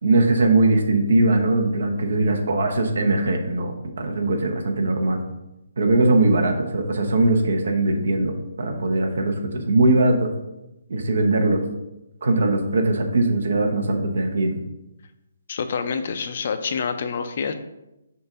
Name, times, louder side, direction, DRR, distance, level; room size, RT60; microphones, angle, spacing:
voice 1, 0.0-5.2 5.8-10.3 10.9-11.6 12.2-14.6, right 2 dB, 70° right, 4 dB, 1.0 m, -20 dB
voice 2, 15.5-17.5, left 5 dB, 45° left, 9 dB, 0.5 m, -27 dB
6.7 x 2.6 x 5.6 m, 0.94 s
hypercardioid pair, 170°, 0 cm